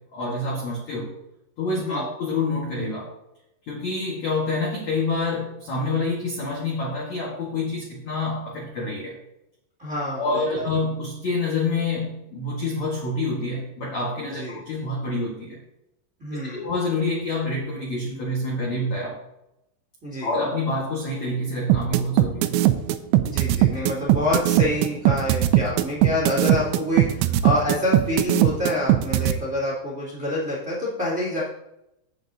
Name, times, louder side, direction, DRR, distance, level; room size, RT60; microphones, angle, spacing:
voice 1, 0.1-1.1 1.6-3.1 3.7-9.2 10.2-15.6 16.5-19.2 20.2-22.6, left 2 dB, 70° left, -3 dB, 1.6 m, -27 dB
voice 2, 9.8-10.6 14.3-14.6 16.2-16.7 20.0-20.3 23.2-31.4, left 1 dB, 25° right, -6 dB, 1.8 m, -27 dB
sound 1, 21.7-29.3, right 14 dB, 85° right, 2.6 m, -19 dB
16.0 x 7.1 x 2.7 m, 0.86 s
omnidirectional pair, 5.8 m